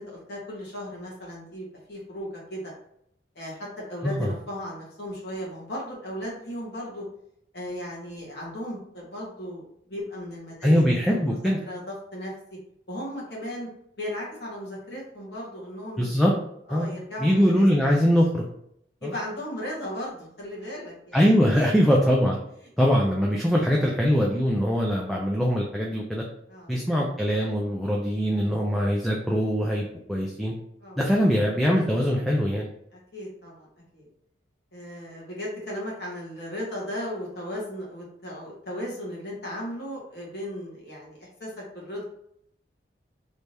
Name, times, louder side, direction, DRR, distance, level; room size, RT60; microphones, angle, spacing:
voice 1, 0.0-2.6 3.3-7.0 7.5-10.8 11.1-12.3 12.9-13.7 14.0-16.1 16.7-17.6 19.0-21.7 26.5-26.7 30.8-31.0 32.9-33.7 33.9-34.1 34.7-42.0, equal, 60° left, -4 dB, 1.4 m, -36 dB
voice 2, 4.0-4.3 10.6-11.6 16.0-16.3 16.7-16.9 17.2-18.4 19.0-19.2 21.1-22.4 22.8-26.2 26.7-30.5 31.0-32.7, equal, ahead, -2 dB, 0.3 m, -22 dB
3.4 x 2.7 x 3.2 m, 0.73 s
head